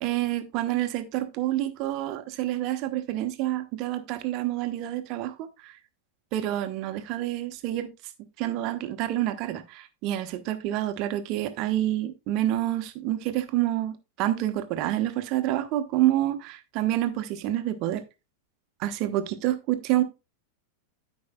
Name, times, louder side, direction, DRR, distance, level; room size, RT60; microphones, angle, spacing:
voice 1, 0.0-5.8 6.3-7.9 8.4-18.0 18.8-20.0, right 14 dB, 40° right, 1.1 m, -28 dB
13.0 x 5.3 x 2.3 m
figure-of-eight pair, 90°, 0 cm